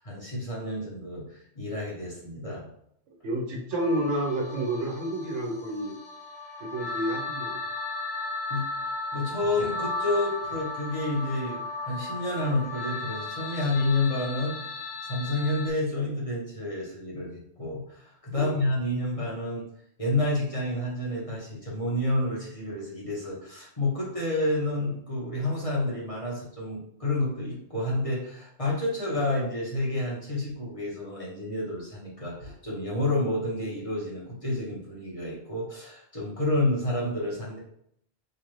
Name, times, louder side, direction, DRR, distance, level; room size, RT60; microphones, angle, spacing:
voice 1, 0.0-2.6 8.5-8.7 9.1-19.6 20.0-37.6, left 2 dB, 30° left, -5 dB, 1.2 m, -29 dB
voice 2, 3.2-5.9 6.6-7.6 18.4-18.5, right 1 dB, 85° right, 0 dB, 1.2 m, -30 dB
sound 1, 3.7-15.7, left 3 dB, 85° left, 1.1 m, -35 dB
4.8 x 2.5 x 3.1 m, 0.71 s
omnidirectional pair, 1.2 m